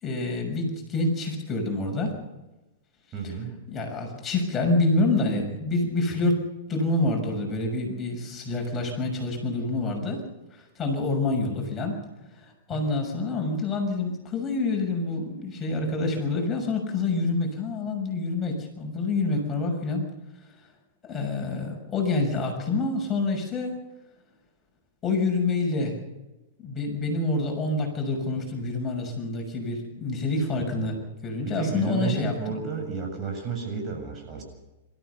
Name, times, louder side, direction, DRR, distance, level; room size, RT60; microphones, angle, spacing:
voice 1, 0.0-2.2 3.2-3.3 3.7-6.4 6.7-10.2 10.5-11.9 12.3-20.1 21.0-23.8 25.0-26.0 26.6-31.0 31.2-32.6, left 2 dB, 25° left, 1 dB, 6.5 m, -27 dB
voice 2, 3.1-3.6 12.7-12.8 30.8-30.9 31.5-34.4, right 5 dB, 30° right, 2 dB, 7.2 m, -32 dB
26.5 x 14.5 x 6.9 m, 1.0 s
hypercardioid pair, 110°, 0 cm